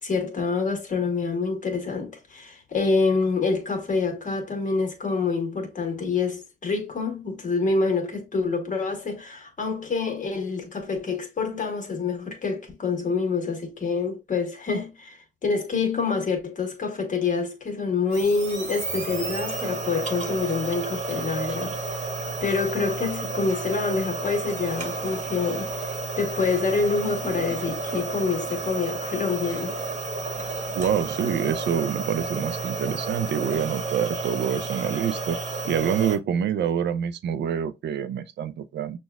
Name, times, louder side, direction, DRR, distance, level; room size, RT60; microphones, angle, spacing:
voice 1, 0.0-21.8 22.4-25.9 26.2-29.7, left 4 dB, 40° left, 1.4 m, -26 dB
sound 1, 18.1-36.2, right 3 dB, 35° right, 1.1 m, -31 dB
voice 2, 30.7-35.4 35.6-39.0, right 8 dB, 60° right, 0.5 m, -26 dB
6.2 x 2.3 x 2.3 m
cardioid pair, 90°, 20 cm